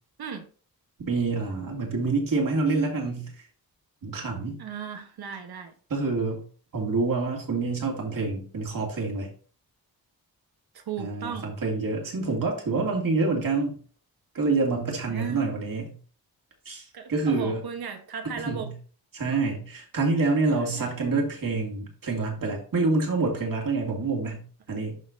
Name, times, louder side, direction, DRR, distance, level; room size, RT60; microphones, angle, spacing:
voice 1, 1.0-3.3 4.0-4.6 5.9-6.4 6.7-9.3 11.0-13.8 14.3-15.9 16.7-16.8 17.1-17.6 18.5-18.7 19.1-25.0, right 3 dB, 60° right, 2.4 m, -27 dB
voice 2, 4.6-5.7 10.7-11.5 15.1-15.4 16.9-18.7 20.5-21.2, right 7 dB, 80° right, 1.2 m, -36 dB
11.5 x 4.4 x 2.7 m
wide cardioid pair, 100°, 37 cm